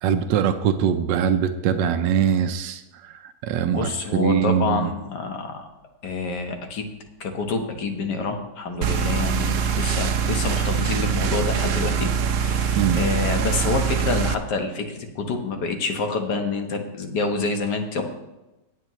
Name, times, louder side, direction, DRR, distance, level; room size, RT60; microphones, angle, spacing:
voice 1, 0.0-4.9 12.8-13.0, right 8 dB, 80° right, 7 dB, 1.3 m, -22 dB
voice 2, 3.6-5.7 6.0-6.9 7.2-12.1 12.4-18.0, left 4 dB, 65° left, 5 dB, 1.8 m, -27 dB
sound 1, 8.8-14.3, right 7 dB, 60° right, 0.8 m, -23 dB
19.0 x 7.3 x 3.1 m, 1.0 s
omnidirectional pair, 1.9 m